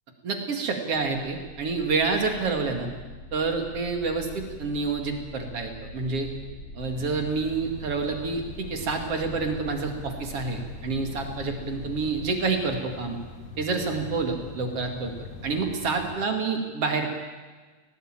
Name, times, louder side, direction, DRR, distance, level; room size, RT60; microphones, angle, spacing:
voice 1, 0.2-2.9 3.3-6.3 6.8-13.2 13.6-17.1, right 4 dB, 45° right, 4 dB, 3.1 m, -28 dB
sound 1, 0.9-12.3, left 2 dB, 70° left, 8.0 m, -43 dB
sound 2, 6.8-16.2, left 2 dB, 40° left, 2.6 m, -43 dB
18.5 x 17.5 x 9.0 m, 1.3 s
omnidirectional pair, 3.9 m